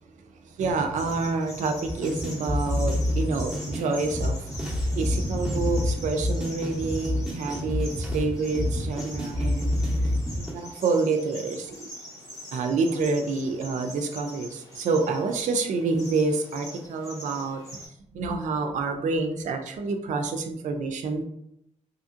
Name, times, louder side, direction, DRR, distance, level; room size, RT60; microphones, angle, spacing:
voice 1, 0.6-4.5 4.9-9.7 10.4-11.7 12.5-17.6 18.1-21.2, right 3 dB, 90° right, 6 dB, 0.4 m, -28 dB
sound 1, 0.9-17.9, equal, 30° left, 0.8 m, -44 dB
sound 2, 1.9-10.5, left 1 dB, 5° right, 0.7 m, -27 dB
2.8 x 2.7 x 2.5 m, 0.78 s
wide cardioid pair, 150°, 12 cm